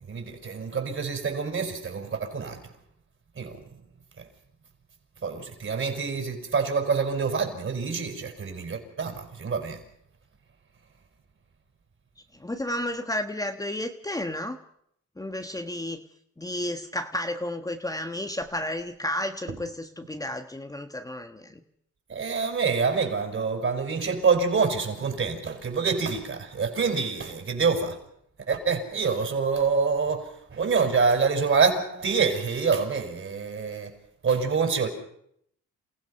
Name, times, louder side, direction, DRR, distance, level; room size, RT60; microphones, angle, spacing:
voice 1, 0.0-2.6 3.3-3.6 4.2-4.3 5.2-9.8 19.5-19.6 22.1-28.0 28.5-33.9 34.2-34.9, right 5 dB, 45° right, 6.0 m, -26 dB
voice 2, 12.3-14.6 15.2-16.0 16.4-21.6, left 1 dB, 10° left, 1.4 m, -32 dB
28.5 x 16.0 x 5.8 m
cardioid pair, 90°, 30 cm